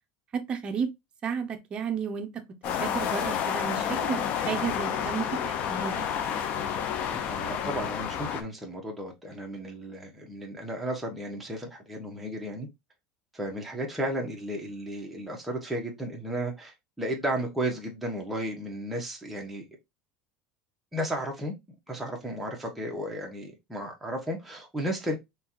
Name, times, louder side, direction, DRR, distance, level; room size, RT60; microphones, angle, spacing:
voice 1, 0.3-0.9 1.2-6.0, right 6 dB, 30° right, 0.8 m, -33 dB
sound 1, 2.6-8.4, left 8 dB, 50° left, 0.7 m, -30 dB
voice 2, 7.1-12.7 13.3-19.6 20.9-21.5 21.9-25.2, right 1 dB, 5° right, 1.2 m, -34 dB
4.3 x 3.2 x 2.9 m
supercardioid pair, 140°, 3 cm